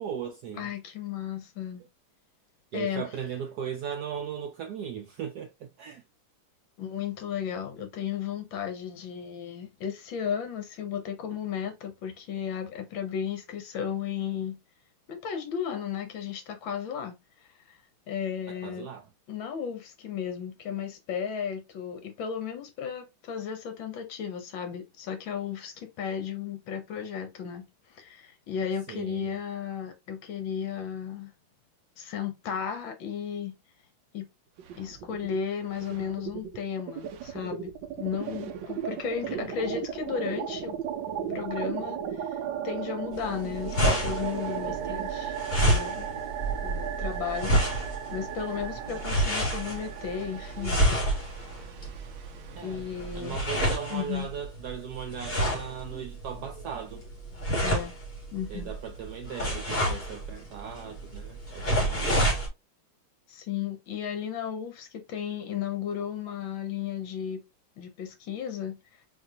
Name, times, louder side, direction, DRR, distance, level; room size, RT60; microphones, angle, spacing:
voice 1, 0.0-0.7 2.7-6.0 18.5-19.0 28.9-29.3 39.3-39.8 44.6-45.1 52.5-52.8 53.1-57.0 58.5-62.3, right 8 dB, 85° right, 0.8 m, -38 dB
voice 2, 0.6-1.9 2.7-3.1 6.8-14.6 15.1-17.2 17.7-17.8 18.1-18.9 19.3-27.7 27.9-31.3 32.0-33.6 34.1-34.3 34.7-40.7 41.3-45.3 45.6-46.1 46.6-50.9 52.6-53.4 53.9-54.3 57.6-58.0 58.3-58.7 61.8-62.0 63.3-67.4 67.8-68.8, left 8 dB, 70° left, 1.6 m, -34 dB
sound 1, 34.6-35.4 35.7-53.7, right 8 dB, 70° right, 1.2 m, -36 dB
sound 2, 43.1-62.5, right 1 dB, 30° left, 2.3 m, -29 dB
4.3 x 4.0 x 2.8 m
omnidirectional pair, 2.3 m